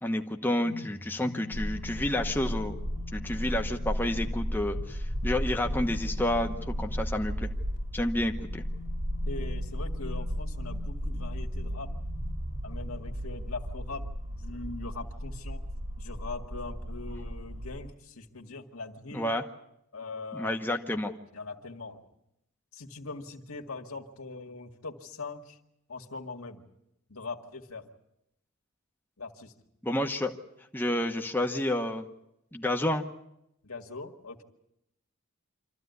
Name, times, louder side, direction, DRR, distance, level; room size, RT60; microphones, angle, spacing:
voice 1, 0.0-2.8 3.1-7.5 7.9-8.6 19.1-19.4 20.3-21.1 29.8-30.4 30.7-32.1 32.5-33.1, left 1 dB, 10° left, 3 dB, 1.0 m, -30 dB
sound 1, 0.6-13.5, left 3 dB, 60° left, 1.7 m, -45 dB
sound 2, 1.5-17.9, equal, 35° right, 1.5 m, -34 dB
voice 2, 9.3-11.9 12.6-15.6 16.0-19.3 19.9-20.6 21.3-22.0 22.7-25.6 25.9-26.6 27.1-27.9 29.2-29.5 33.6-34.4, left 3 dB, 80° left, 3 dB, 2.0 m, -41 dB
25.5 x 14.0 x 9.5 m, 0.83 s
head